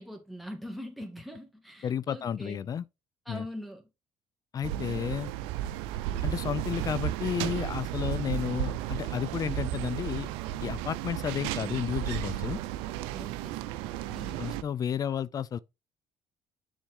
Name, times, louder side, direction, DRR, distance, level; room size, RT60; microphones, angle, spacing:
voice 1, 0.0-2.7 3.3-3.9 13.1-14.5, equal, ahead, 2.1 m, -43 dB
voice 2, 1.8-2.9 3.3-3.5 4.5-5.3 6.2-10.3 10.6-12.6 14.4-15.6, left 8 dB, 40° left, 0.4 m, -32 dB
sound 1, 4.6-14.6, right 13 dB, 90° right, 0.6 m, -33 dB
7.0 x 3.6 x 4.8 m
supercardioid pair, 90°, 9 cm